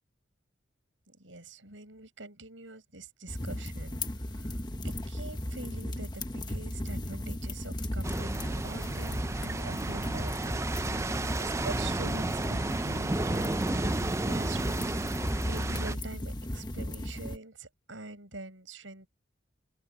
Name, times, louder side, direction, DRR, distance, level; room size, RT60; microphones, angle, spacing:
voice 1, 1.1-19.1, right 2 dB, 85° right, 7.9 m, -45 dB
sound 1, 3.3-17.4, left 1 dB, 20° left, 1.3 m, -36 dB
sound 2, 8.0-16.0, right 2 dB, 15° right, 0.4 m, -32 dB
open air
head